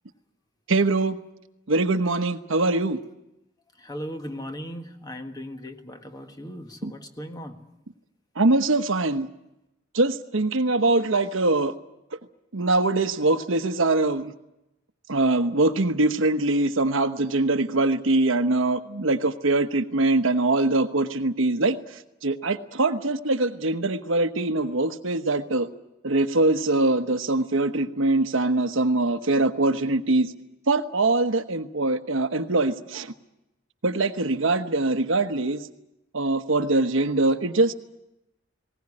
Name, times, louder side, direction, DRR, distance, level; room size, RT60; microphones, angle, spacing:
voice 1, 0.7-1.2 1.7-3.0 6.8-6.9 8.3-9.3 9.9-11.7 12.5-14.3 15.1-25.7 26.0-30.3 30.7-33.1 33.8-35.7 36.1-37.7, right 2 dB, 80° right, 9 dB, 1.1 m, -23 dB
voice 2, 3.8-7.6, equal, 20° left, 6 dB, 1.6 m, -37 dB
20.0 x 18.0 x 9.8 m, 0.90 s
head